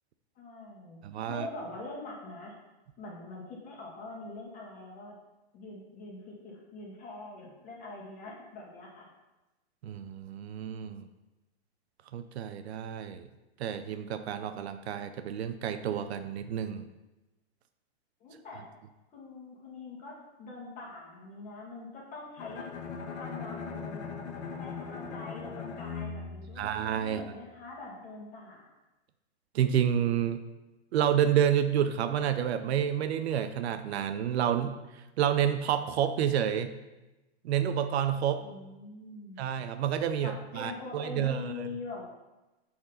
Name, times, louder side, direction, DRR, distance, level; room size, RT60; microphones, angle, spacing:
voice 1, 0.4-1.0 1.3-2.5 3.0-5.2 5.5-9.1 18.2-18.6 19.1-22.7 23.2-24.1 24.5-26.7 27.0-28.7 38.4-39.4 40.2-42.0, left 3 dB, 25° left, -3 dB, 1.9 m, -43 dB
voice 2, 1.0-1.5 9.8-11.1 12.1-13.3 13.6-16.9 26.6-27.2 29.5-30.4 30.9-36.7 37.4-38.4 39.4-41.7, right 9 dB, 70° right, 10 dB, 0.6 m, -29 dB
Bowed string instrument, 22.4-27.4, left 5 dB, 80° left, 1.4 m, -40 dB
6.4 x 4.3 x 5.4 m, 1.0 s
hypercardioid pair, 150°, 34 cm